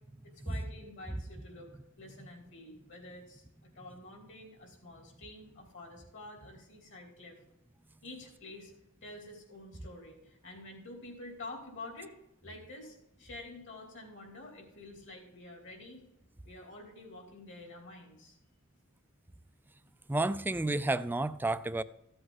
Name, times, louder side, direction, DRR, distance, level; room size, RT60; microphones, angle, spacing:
voice 1, 0.2-1.7 2.0-3.4 3.7-7.4 8.0-8.7 9.0-12.1 12.4-16.0 16.4-18.4, left 2 dB, 60° left, 3.2 m, -48 dB
voice 2, 20.1-21.8, right 2 dB, 10° right, 0.3 m, -31 dB
14.5 x 7.8 x 4.0 m
head